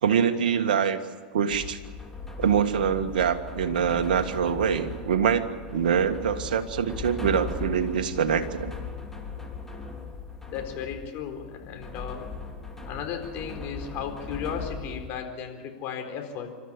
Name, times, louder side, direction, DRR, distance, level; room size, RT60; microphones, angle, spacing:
voice 1, 0.0-1.0 1.3-1.8 2.4-8.7, right 7 dB, 70° right, 7 dB, 1.7 m, -24 dB
sound 1, 1.5-15.1, left 4 dB, 5° left, 3.6 m, -38 dB
voice 2, 10.5-12.3 12.8-16.5, left 7 dB, 45° left, 5 dB, 4.1 m, -35 dB
27.0 x 13.0 x 9.9 m, 1.5 s
hypercardioid pair, 95°, 5 cm